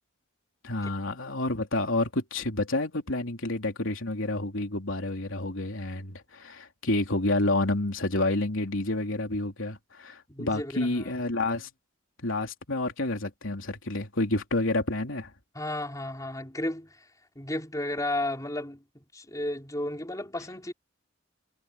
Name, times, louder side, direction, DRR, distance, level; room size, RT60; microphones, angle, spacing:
voice 1, 0.6-11.7 12.2-15.3, left 2 dB, 80° left, 3.3 m, -29 dB
voice 2, 10.3-11.1 15.5-17.0 17.3-18.8 19.1-20.7, left 1 dB, 15° left, 5.0 m, -33 dB
head